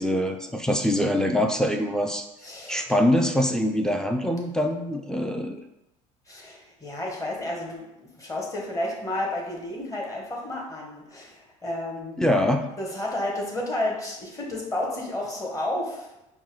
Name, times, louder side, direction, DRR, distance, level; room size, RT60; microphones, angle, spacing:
voice 1, 0.0-2.3 2.7-5.6 12.2-12.7, left 1 dB, 5° left, 4 dB, 0.4 m, -24 dB
voice 2, 2.4-2.8 6.3-12.2 12.8-16.1, left 1 dB, 20° left, -2 dB, 1.2 m, -31 dB
5.3 x 2.2 x 3.1 m, 0.92 s
supercardioid pair, 95°, 16 cm